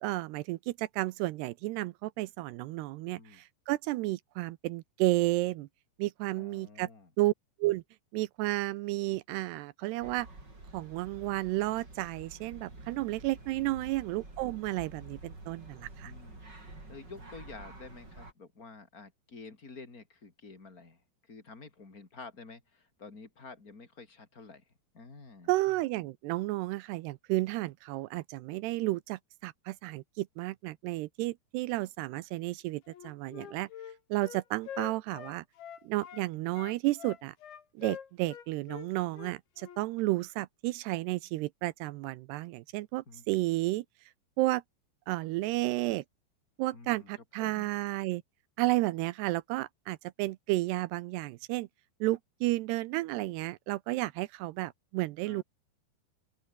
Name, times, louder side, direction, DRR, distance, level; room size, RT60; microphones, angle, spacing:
voice 1, 0.0-5.7 6.0-6.9 7.2-7.3 7.6-7.8 8.1-10.3 10.7-16.1 25.5-33.7 34.1-35.4 35.8-37.3 37.8-43.9 44.4-44.6 45.1-46.0 46.6-48.2 48.6-51.7 52.0-55.4, right 19 dB, 80° right, 2.4 m, -32 dB
voice 2, 6.4-7.1 13.6-13.9 16.0-16.4 16.9-25.5 43.1-43.3 46.7-47.1 47.4-47.7 55.3-55.4, left 4 dB, 20° left, 3.6 m, -50 dB
sound 1, 10.0-18.3, right 2 dB, 20° right, 7.4 m, -49 dB
Wind instrument woodwind instrument, 32.9-36.3 36.5-39.8, left 9 dB, 70° left, 5.4 m, -45 dB
open air
omnidirectional pair, 5.5 m